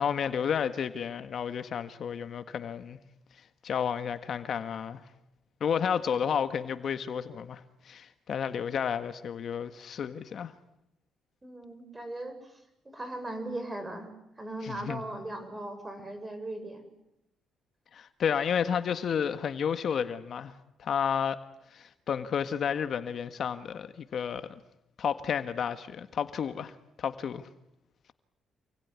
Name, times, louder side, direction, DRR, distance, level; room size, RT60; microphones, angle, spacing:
voice 1, 0.0-3.0 3.6-5.0 5.6-10.5 14.6-15.0 17.9-21.4 21.7-24.5 25.0-27.5, left 7 dB, 60° left, 1.6 m, -31 dB
voice 2, 11.4-12.6 12.8-14.1 14.4-16.9, right 1 dB, 20° right, 7.3 m, -38 dB
28.5 x 21.5 x 9.7 m
cardioid pair, 90°, 0 cm